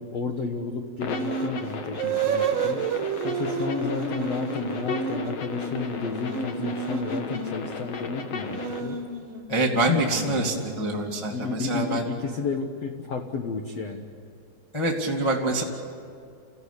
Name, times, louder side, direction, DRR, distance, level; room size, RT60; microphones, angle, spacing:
voice 1, 0.0-2.8 3.2-9.0 9.8-10.7 11.3-14.1, left 5 dB, 90° left, 4 dB, 1.4 m, -32 dB
sound 1, 1.0-8.8, left 4 dB, 60° left, 1.7 m, -35 dB
sound 2, 1.1-1.6 1.9-7.6 8.3-11.3, right 5 dB, 60° right, 3.4 m, -31 dB
voice 2, 9.5-12.0 14.7-15.6, right 2 dB, 15° left, -1 dB, 0.9 m, -25 dB
30.0 x 15.5 x 10.0 m, 2.3 s
omnidirectional pair, 4.9 m